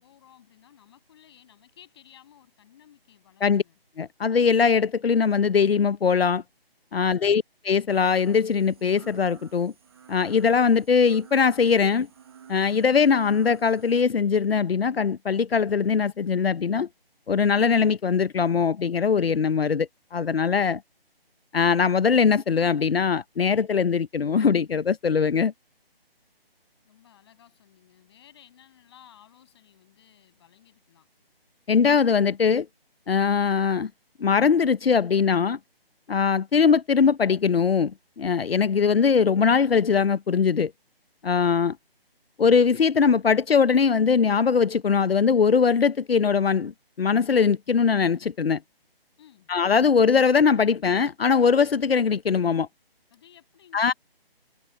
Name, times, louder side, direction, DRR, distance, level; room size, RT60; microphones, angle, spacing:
voice 1, 0.0-3.8 26.8-31.1 49.2-49.5 53.1-54.0, left 10 dB, 25° left, 7.6 m, -55 dB
voice 2, 4.0-6.4 6.9-9.7 10.1-12.1 12.5-16.9 17.3-20.8 21.5-25.5 31.7-32.7 33.1-33.9 34.2-35.6 36.1-40.7 41.2-41.8 42.4-46.7 47.0-48.6 49.5-52.7 53.7-53.9, left 6 dB, 75° left, 0.8 m, -21 dB
sound 1, 7.9-14.0, right 8 dB, 25° right, 1.3 m, -51 dB
figure-of-eight pair, 165°, 30 cm